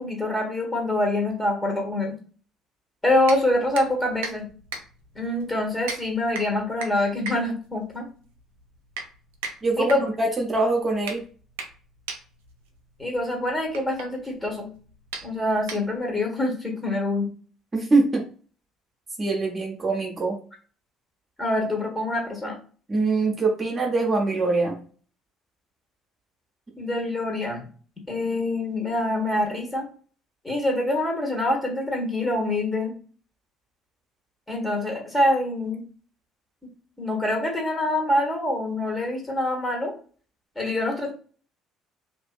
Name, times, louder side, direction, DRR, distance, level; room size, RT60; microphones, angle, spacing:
voice 1, 0.0-2.2 3.0-4.5 5.1-8.1 9.8-10.1 13.0-14.7 15.2-17.3 21.4-22.6 26.8-27.6 28.1-29.9 30.4-32.9 34.5-35.8 37.0-39.9 40.5-41.1, left 1 dB, 15° left, 1 dB, 1.3 m, -25 dB
sound 1, 3.2-16.2, right 4 dB, 80° right, 0.4 m, -39 dB
voice 2, 9.6-9.9 10.2-11.2 17.7-18.2 19.2-20.4 22.9-24.8, right 3 dB, 35° right, 0 dB, 0.8 m, -23 dB
2.6 x 2.5 x 2.4 m, 0.42 s
hypercardioid pair, 55°, 0 cm